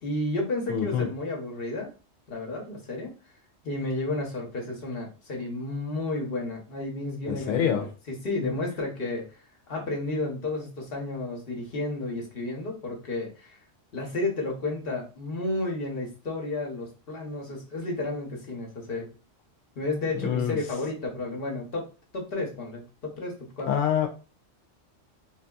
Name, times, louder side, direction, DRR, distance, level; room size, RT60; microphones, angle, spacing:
voice 1, 0.0-1.9 2.3-3.1 3.6-7.7 8.1-9.3 9.7-13.6 13.9-19.1 19.8-21.9 22.1-23.7, left 2 dB, 55° left, 1.0 m, -32 dB
voice 2, 0.7-1.1 7.3-7.9 8.4-8.5 20.1-20.6 23.7-24.1, left 8 dB, 90° left, 1.0 m, -26 dB
3.9 x 2.7 x 2.3 m
omnidirectional pair, 1.3 m